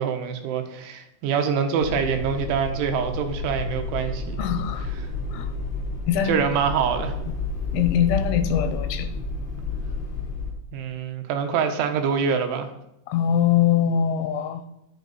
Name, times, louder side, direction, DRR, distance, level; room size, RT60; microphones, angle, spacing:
voice 1, 0.0-4.4 6.3-7.2 10.7-12.7, right 6 dB, 80° right, 6 dB, 3.4 m, -25 dB
sound 1, 1.8-10.5, left 3 dB, 40° left, 0.7 m, -30 dB
voice 2, 4.4-4.9 5.3-5.5 6.1-6.4 7.7-9.1 13.1-14.6, left 9 dB, 85° left, 9 dB, 3.0 m, -22 dB
11.0 x 9.4 x 4.1 m, 0.85 s
omnidirectional pair, 5.6 m